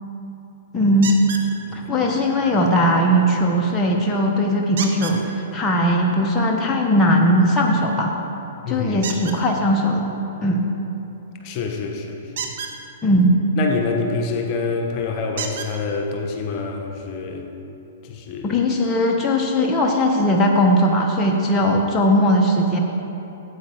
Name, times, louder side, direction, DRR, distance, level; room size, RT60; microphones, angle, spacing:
voice 1, 0.7-1.2 1.7-8.1 8.7-10.1 10.4-10.6 13.0-13.4 18.4-22.8, equal, 15° left, -2 dB, 1.1 m, -19 dB
sound 1, 1.0-1.5 4.8-5.2 9.0-9.4 12.3-12.7 14.4-14.5 15.4-15.7 16.7-16.8 17.3-17.4, right 6 dB, 60° right, 1.1 m, -30 dB
voice 2, 8.6-9.1 11.4-12.5 13.6-17.5 18.0-18.6, left 4 dB, 40° left, 2 dB, 1.2 m, -27 dB
13.0 x 8.7 x 3.8 m, 2.9 s
hypercardioid pair, 115°, 0 cm